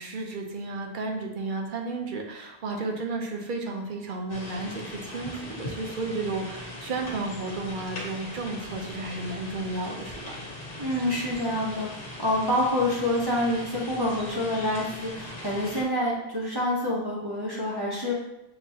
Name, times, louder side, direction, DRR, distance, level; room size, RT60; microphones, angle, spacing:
voice 1, 0.0-10.3, right 3 dB, 55° right, 2 dB, 0.8 m, -33 dB
sound 1, 4.3-15.8, left 1 dB, 60° left, 1.2 m, -40 dB
voice 2, 10.8-18.2, left 1 dB, 25° right, -6 dB, 0.8 m, -27 dB
6.6 x 2.9 x 2.7 m, 0.91 s
omnidirectional pair, 1.0 m